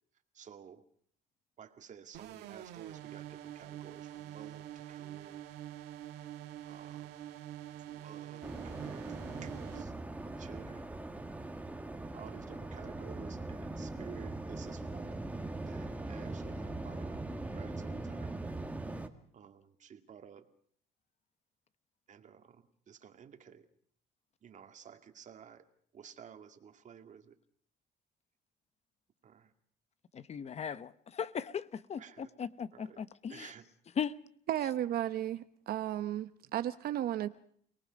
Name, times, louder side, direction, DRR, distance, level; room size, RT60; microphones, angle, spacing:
voice 1, 0.3-0.8 1.6-5.4 6.6-7.2 7.8-9.9 10.4-10.9 12.1-15.3 15.6-18.5 19.3-20.5 22.1-23.7 24.4-25.7 25.9-27.4 29.2-29.5 32.0-32.3 32.7-33.0 33.3-33.7, right 7 dB, 45° right, 2.1 m, -53 dB
sound 1, 2.1-9.8, right 12 dB, 90° right, 1.8 m, -46 dB
Waves surf, 8.4-19.1, right 2 dB, 10° right, 1.8 m, -41 dB
voice 2, 30.1-32.0 32.4-33.5 34.0-34.1, left 7 dB, 40° left, 0.9 m, -37 dB
voice 3, 34.5-37.3, right 12 dB, 65° right, 0.8 m, -34 dB
29.0 x 19.0 x 5.3 m
cardioid pair, 110°, 17 cm